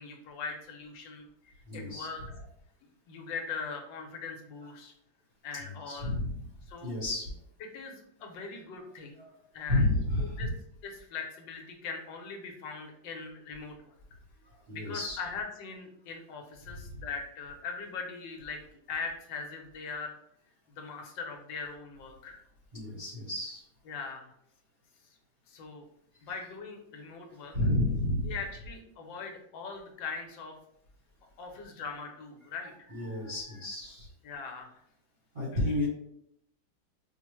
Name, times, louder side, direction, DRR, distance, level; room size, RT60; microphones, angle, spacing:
voice 1, 0.0-2.2 3.1-4.9 5.4-6.1 6.7-6.9 7.7-9.2 9.5-9.8 10.4-10.5 10.8-13.9 14.7-18.6 18.9-20.2 20.8-22.4 23.9-24.3 25.5-25.9 26.2-27.5 28.2-30.5 31.4-32.7 34.2-34.8, left 5 dB, 75° left, 2 dB, 1.3 m, -40 dB
voice 2, 1.7-2.1 4.6-4.7 5.9-6.4 6.8-7.4 8.8-8.9 9.2-9.4 9.7-10.5 14.5-15.2 16.7-16.8 22.7-23.6 26.2-26.3 27.5-28.3 32.9-34.1 35.3-35.9, left 1 dB, 45° right, -6 dB, 0.8 m, -31 dB
4.8 x 2.1 x 2.9 m, 0.73 s
omnidirectional pair, 2.1 m